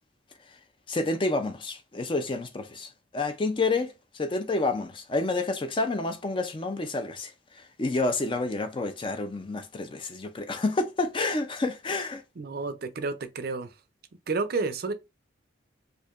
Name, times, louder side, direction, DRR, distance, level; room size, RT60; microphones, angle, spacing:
voice 1, 0.9-12.2, left 3 dB, 25° left, 0.4 m, -29 dB
voice 2, 12.4-13.7 14.3-14.9, right 3 dB, 55° right, 0.5 m, -30 dB
4.6 x 2.6 x 2.4 m
head